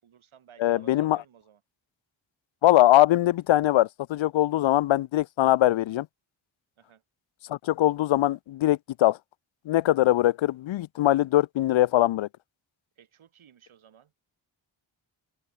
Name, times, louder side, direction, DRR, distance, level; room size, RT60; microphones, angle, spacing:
voice 1, 0.0-1.6 6.8-7.0 13.0-14.2, right 9 dB, 90° right, 6.3 m, -55 dB
voice 2, 0.6-1.2 2.6-6.1 7.5-9.2 9.7-12.3, left 14 dB, 75° left, 0.6 m, -22 dB
open air
wide cardioid pair, 175°, 47 cm